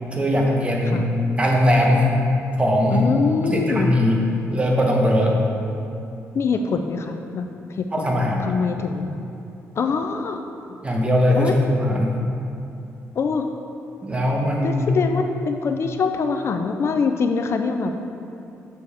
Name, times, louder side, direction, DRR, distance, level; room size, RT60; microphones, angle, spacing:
voice 1, 0.1-1.0 1.4-2.1 2.6-3.1 3.4-4.2 4.5-5.3 7.9-8.5 10.8-12.2 14.0-14.9, equal, 20° right, -1 dB, 1.1 m, -20 dB
voice 2, 2.9-4.0 6.3-9.2 9.8-10.4 11.4-11.6 13.2-13.5 14.6-18.0, left 5 dB, 50° left, 6 dB, 0.4 m, -24 dB
6.9 x 6.3 x 3.5 m, 2.7 s
cardioid pair, 90°, 6 cm